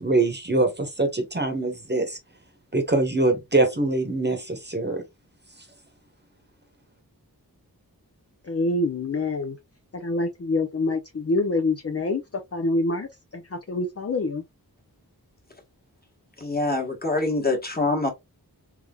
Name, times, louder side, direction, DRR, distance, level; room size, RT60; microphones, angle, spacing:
voice 1, 0.0-2.2 2.7-5.0, right 2 dB, 25° right, 1.1 m, -23 dB
voice 2, 8.4-9.6 9.9-12.2 12.5-14.4, left 2 dB, 40° left, 0.6 m, -26 dB
voice 3, 16.4-18.1, left 2 dB, 25° left, 1.3 m, -25 dB
3.5 x 3.3 x 2.3 m
wide cardioid pair, 60°, 38 cm